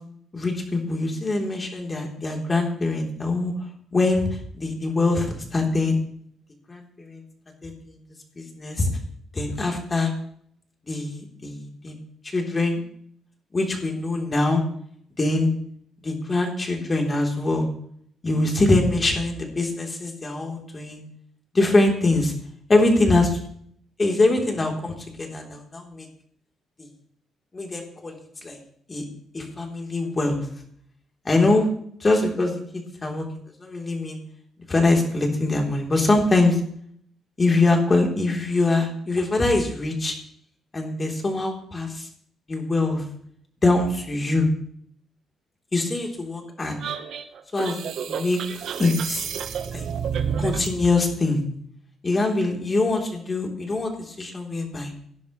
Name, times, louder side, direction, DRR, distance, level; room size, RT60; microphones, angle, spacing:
voice 1, 0.3-3.5 3.9-6.0 6.7-7.2 7.6-8.0 8.4-8.9 9.3-10.1 10.9-12.0 12.2-12.8 13.5-14.6 15.2-15.5 16.0-17.7 18.2-21.0 21.5-22.3 22.7-23.4 24.0-26.1 27.5-28.2 28.4-28.6 28.9-29.0 29.3-30.4 31.3-31.7 32.0-32.6 33.0-33.2 33.6-34.2 34.7-36.6 37.4-40.1 40.7-42.1 42.5-43.0 43.6-44.5 45.7-46.8 47.5-47.8 48.1-49.2 49.7-49.9 50.4-51.4 52.0-54.9, left 2 dB, 30° left, 1 dB, 3.5 m, -23 dB
sound 1, 46.8-50.8, right 7 dB, 70° right, 1.1 m, -30 dB
18.5 x 10.5 x 3.2 m, 0.64 s
cardioid pair, 90°, 0 cm